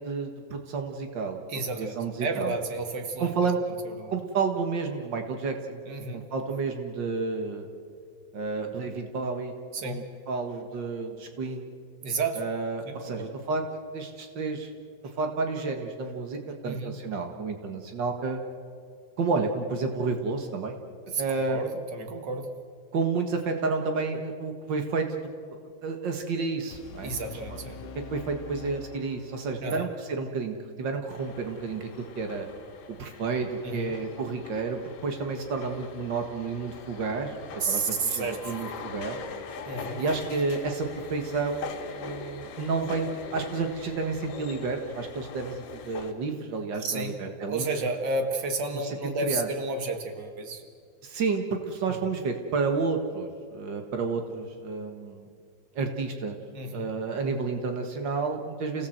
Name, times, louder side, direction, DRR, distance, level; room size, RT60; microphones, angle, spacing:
voice 1, 0.0-1.4 1.7-2.5 3.2-3.6 4.1-5.8 6.1-7.7 8.3-9.6 9.8-11.7 12.4-13.7 13.9-14.7 15.2-18.4 19.2-20.8 21.2-21.7 22.9-25.2 25.5-27.1 27.5-27.6 28.1-32.5 32.9-39.2 40.0-47.6 49.2-49.5 51.0-55.3 55.7-56.4 56.7-58.9, right 4 dB, 80° right, 5 dB, 1.0 m, -31 dB
voice 2, 1.5-3.5 3.8-4.1 5.8-6.3 9.7-10.0 12.0-12.4 12.8-13.3 16.6-17.0 21.1-22.5 27.0-27.8 29.6-29.9 33.6-33.9 37.6-38.6 39.7-40.0 46.8-47.2 47.5-50.6 51.9-52.0 56.5-56.9, right 3 dB, 45° right, 6 dB, 1.4 m, -32 dB
sound 1, 26.7-29.7, left 2 dB, 55° left, 2.2 m, -44 dB
sound 2, 31.1-46.1, left 4 dB, 85° left, 4.0 m, -42 dB
29.0 x 17.5 x 7.9 m, 2.2 s
omnidirectional pair, 4.4 m